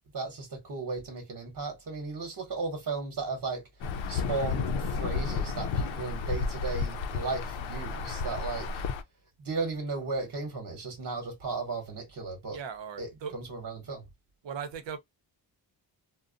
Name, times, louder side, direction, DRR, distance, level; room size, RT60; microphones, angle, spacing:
voice 1, 0.1-3.7 4.1-8.8 9.4-12.6 13.0-14.1, right 3 dB, 50° right, 1.0 m, -35 dB
Insect / Thunder / Rain, 3.8-9.0, left 4 dB, 85° left, 0.5 m, -32 dB
voice 2, 12.5-13.3 14.4-15.0, right 7 dB, 75° right, 0.8 m, -38 dB
2.5 x 2.1 x 2.4 m
cardioid pair, 90°, 45 cm